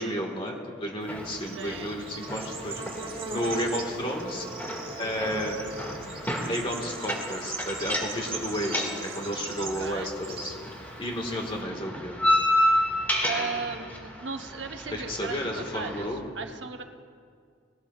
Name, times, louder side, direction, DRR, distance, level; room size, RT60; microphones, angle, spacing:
voice 1, 0.0-2.8 3.3-4.4 5.0-5.6 6.5-10.5 11.0-12.2 14.9-16.3, equal, 30° left, 1 dB, 1.6 m, -32 dB
Bird / Insect, 1.0-11.6, right 3 dB, 30° right, 1.3 m, -39 dB
sound 1, 1.1-16.1, left 1 dB, 10° left, 1.9 m, -31 dB
voice 2, 1.5-1.9 9.6-10.1 13.2-16.8, right 4 dB, 80° right, 5 dB, 0.9 m, -36 dB
20.5 x 17.5 x 2.4 m, 2.2 s
head